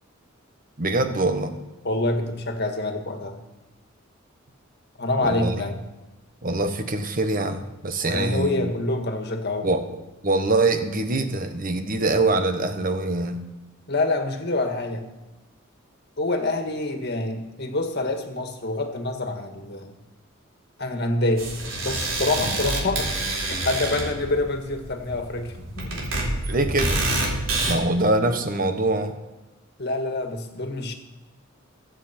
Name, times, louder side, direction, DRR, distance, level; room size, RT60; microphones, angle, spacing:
voice 1, 0.8-1.5 5.2-5.6 6.4-8.7 9.6-9.8 10.2-13.4 22.4-22.5 26.5-27.0 27.6-29.2, right 2 dB, 45° right, 7 dB, 1.3 m, -24 dB
voice 2, 1.8-3.4 5.0-5.8 8.0-9.7 13.9-15.1 16.2-20.0 20.8-21.5 21.8-23.1 23.4-26.1 27.7-27.8 29.8-30.9, left 2 dB, 55° left, 5 dB, 1.7 m, -26 dB
sound 1, 21.4-27.7, right 2 dB, 80° right, 3.6 m, -27 dB
23.0 x 7.8 x 4.4 m, 1.1 s
head